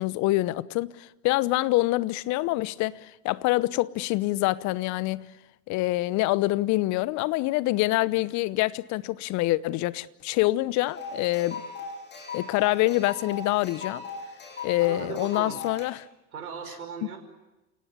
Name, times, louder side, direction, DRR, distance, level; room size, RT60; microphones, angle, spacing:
voice 1, 0.0-5.3 5.7-11.6 12.3-14.0 14.6-16.1 17.0-17.1, left 19 dB, 40° left, 0.9 m, -26 dB
sound 1, 10.9-15.9, left 4 dB, 25° left, 8.0 m, -38 dB
voice 2, 14.8-15.6 16.3-17.2, right 7 dB, 80° right, 5.4 m, -38 dB
29.5 x 18.0 x 9.7 m
hypercardioid pair, 90°, 43 cm